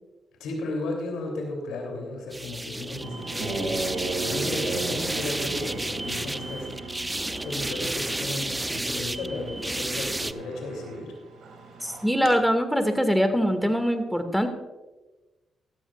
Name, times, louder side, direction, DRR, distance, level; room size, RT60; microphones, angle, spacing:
voice 1, 0.4-6.9 7.4-11.1, left 2 dB, 80° left, 1 dB, 3.0 m, -34 dB
sound 1, 2.3-10.3, right 1 dB, 15° right, 0.5 m, -31 dB
sound 2, 3.0-12.3, right 3 dB, 70° right, 2.3 m, -37 dB
voice 2, 11.8-14.5, equal, ahead, 6 dB, 2.0 m, -23 dB
15.5 x 13.0 x 2.4 m, 1.1 s
hypercardioid pair, 45°, 0 cm